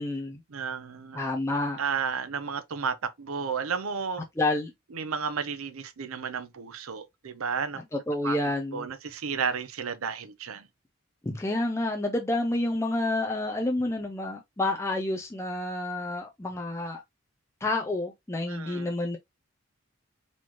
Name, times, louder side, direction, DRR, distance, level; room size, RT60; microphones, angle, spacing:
voice 1, 0.0-0.4 1.1-1.8 4.4-4.7 7.7-8.9 11.2-17.0 17.6-19.2, left 2 dB, 15° left, 0.4 m, -29 dB
voice 2, 0.5-1.2 1.8-4.2 4.9-7.8 8.2-8.4 8.7-10.7 18.5-18.9, right 6 dB, 85° right, 0.6 m, -32 dB
4.2 x 3.0 x 2.9 m
head